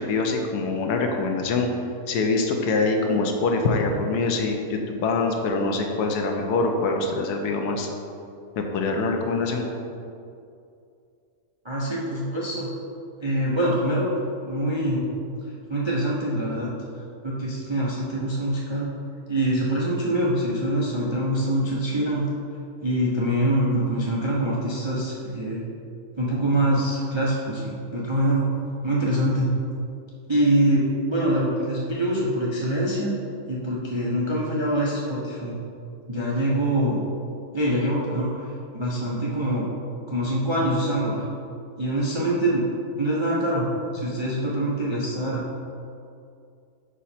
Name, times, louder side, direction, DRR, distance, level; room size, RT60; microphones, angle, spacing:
voice 1, 0.0-1.7 2.1-7.9 8.6-9.7, left 3 dB, 80° left, 3 dB, 1.2 m, -24 dB
voice 2, 11.6-12.7 13.2-14.1 14.5-15.1 15.7-16.7 17.2-18.9 19.3-22.3 22.8-25.6 26.2-28.5 28.8-29.5 30.3-33.2 33.5-35.6 36.1-37.0 37.5-38.3 38.7-39.6 40.1-41.2 41.8-42.6 43.0-45.4, right 1 dB, 35° right, -5 dB, 0.4 m, -24 dB
5.2 x 4.9 x 4.3 m, 2.5 s
omnidirectional pair, 1.7 m